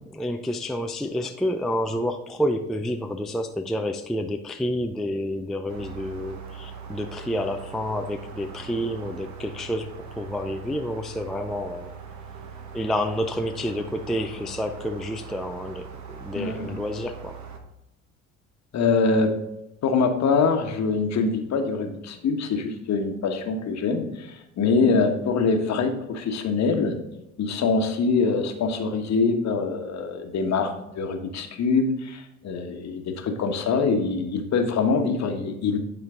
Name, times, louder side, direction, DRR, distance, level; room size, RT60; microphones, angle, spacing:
voice 1, 0.0-11.9 12.7-15.9 16.2-17.4, equal, ahead, 5 dB, 0.4 m, -29 dB
sound 1, 5.7-17.6, right 6 dB, 50° right, 1.1 m, -41 dB
voice 2, 16.3-16.8 18.7-19.3 19.8-27.0 27.4-35.8, left 4 dB, 45° left, 5 dB, 1.2 m, -24 dB
9.4 x 4.4 x 3.6 m, 0.90 s
hypercardioid pair, 60°, 38 cm